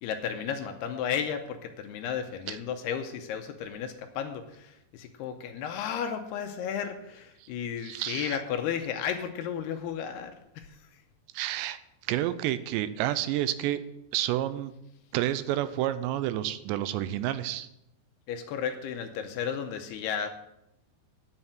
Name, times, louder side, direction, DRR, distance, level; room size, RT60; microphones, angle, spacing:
voice 1, 0.0-11.0 18.3-20.3, left 8 dB, 80° left, 6 dB, 2.6 m, -34 dB
voice 2, 7.8-8.4 11.3-11.8 12.1-13.8 14.1-14.7 15.1-17.7, right 13 dB, 85° right, 13 dB, 2.8 m, -29 dB
9.9 x 5.8 x 7.8 m, 0.84 s
omnidirectional pair, 5.0 m